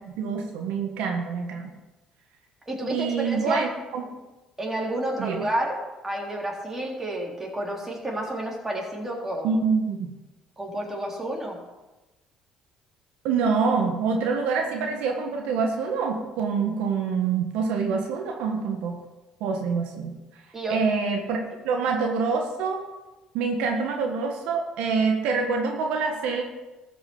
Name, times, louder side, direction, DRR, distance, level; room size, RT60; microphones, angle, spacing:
voice 1, 0.2-1.7 2.9-4.0 5.2-5.4 9.4-10.1 13.2-19.0 19.4-20.1 20.7-22.8 23.3-26.4, right 5 dB, 80° right, 2 dB, 1.5 m, -26 dB
voice 2, 2.7-3.7 4.6-5.8 6.0-9.5 10.6-11.6 20.5-20.8, right 1 dB, 15° right, -2 dB, 3.8 m, -30 dB
13.5 x 6.0 x 7.2 m, 1.1 s
supercardioid pair, 80°, 2 cm